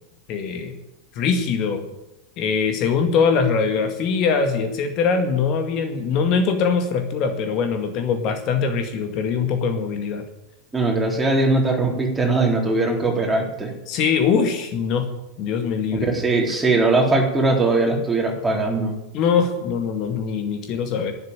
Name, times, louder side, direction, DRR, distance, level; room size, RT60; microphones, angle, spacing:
voice 1, 0.3-0.8 1.1-1.8 2.4-10.2 13.9-15.1 15.4-16.1 19.1-21.1, left 5 dB, 40° left, 5 dB, 2.0 m, -22 dB
voice 2, 10.7-13.7 15.9-19.0, right 2 dB, 10° right, 1 dB, 3.7 m, -20 dB
12.0 x 10.5 x 8.8 m, 0.91 s
figure-of-eight pair, 90°, 0 cm